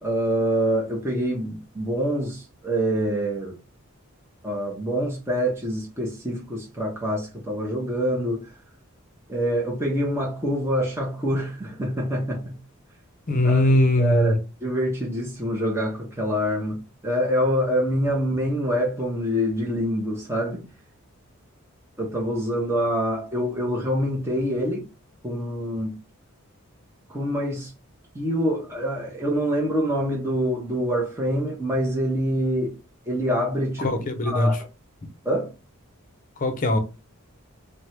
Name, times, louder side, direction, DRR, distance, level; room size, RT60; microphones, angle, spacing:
voice 1, 0.0-3.6 4.4-8.5 9.3-12.6 13.4-13.6 14.0-20.6 22.0-24.9 25.2-26.0 27.1-27.7 28.1-32.7 33.1-33.9 34.2-34.6 35.2-35.5, equal, 10° right, 0.7 m, -25 dB
voice 2, 13.3-14.3 33.8-34.5 36.4-36.8, left 1 dB, 40° left, 0.6 m, -20 dB
3.4 x 2.1 x 2.9 m
head